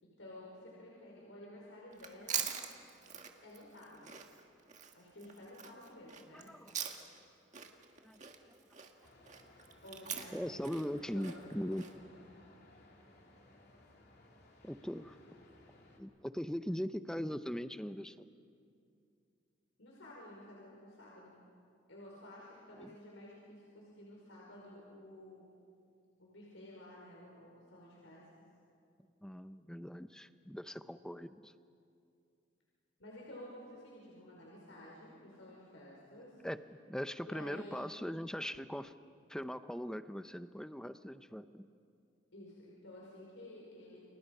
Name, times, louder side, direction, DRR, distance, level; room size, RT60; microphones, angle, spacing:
voice 1, 0.0-2.5 3.4-4.1 4.9-6.5 9.8-10.6 11.1-11.9 19.8-21.4 21.9-25.5 26.2-28.3 33.0-36.4 37.2-38.1 42.3-44.0, left 1 dB, 90° left, -4 dB, 5.4 m, -52 dB
Chewing mastication, 1.9-7.3 7.5-11.9, right 8 dB, 40° right, 1.7 m, -43 dB
voice 2, 6.3-6.7 8.0-8.6 10.3-11.8 14.6-15.2 16.0-18.3 22.8-22.9 29.2-31.5 36.4-36.6 36.9-38.9 39.3-41.7, equal, 5° left, 11 dB, 0.6 m, -40 dB
sound 1, 9.0-16.0, left 1 dB, 55° left, 3.2 m, -61 dB
30.0 x 28.0 x 5.5 m, 2.4 s
head